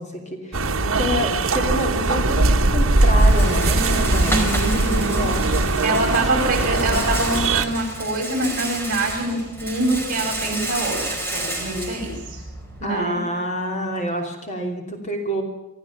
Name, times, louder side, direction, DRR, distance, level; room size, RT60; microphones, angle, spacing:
voice 1, 0.0-5.9 6.3-7.0 12.8-15.4, equal, 30° left, 2 dB, 3.0 m, -28 dB
sound 1, 0.5-7.7, right 2 dB, 65° right, 1.4 m, -20 dB
Rattle, 1.8-12.8, right 1 dB, 10° left, 4.7 m, -31 dB
voice 2, 4.2-5.2 5.8-11.0 11.3-12.4 12.8-13.2, right 2 dB, 40° right, 1 dB, 7.3 m, -25 dB
25.5 x 14.5 x 7.2 m, 1.0 s
head